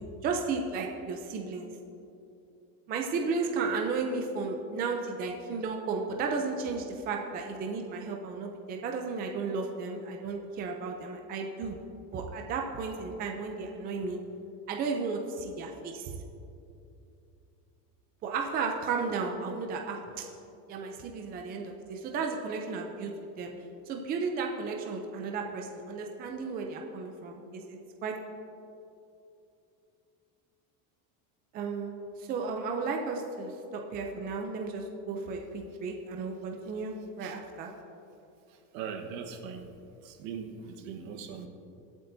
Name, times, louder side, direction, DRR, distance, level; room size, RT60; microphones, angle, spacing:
voice 1, 0.0-1.7 2.9-11.8 12.1-14.2 14.7-16.2 18.2-20.3 20.7-23.1 23.4-23.5 23.9-28.1 31.5-31.9 32.2-37.7, right 4 dB, 20° right, 2 dB, 0.5 m, -34 dB
voice 2, 38.5-39.7 40.0-41.5, right 6 dB, 65° right, 4 dB, 1.4 m, -40 dB
24.0 x 8.1 x 2.7 m, 2.7 s
cardioid pair, 170°, 43 cm